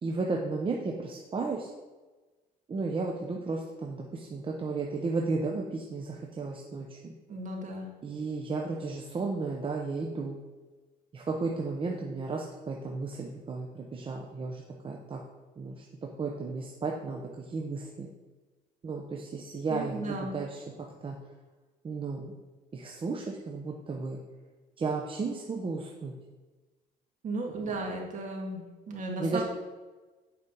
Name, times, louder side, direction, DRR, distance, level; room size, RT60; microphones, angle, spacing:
voice 1, 0.0-1.7 2.7-7.1 8.0-10.4 11.1-15.2 15.6-18.1 18.8-20.6 21.0-21.2 21.8-22.3 22.7-24.2 24.8-26.1 27.6-27.7 29.2-29.4, right 3 dB, 30° right, 0 dB, 0.9 m, -34 dB
voice 2, 7.3-7.9 19.7-20.5 27.2-29.4, right 2 dB, 45° right, 1 dB, 2.1 m, -35 dB
8.4 x 5.1 x 5.4 m, 1.3 s
cardioid pair, 110°, 17 cm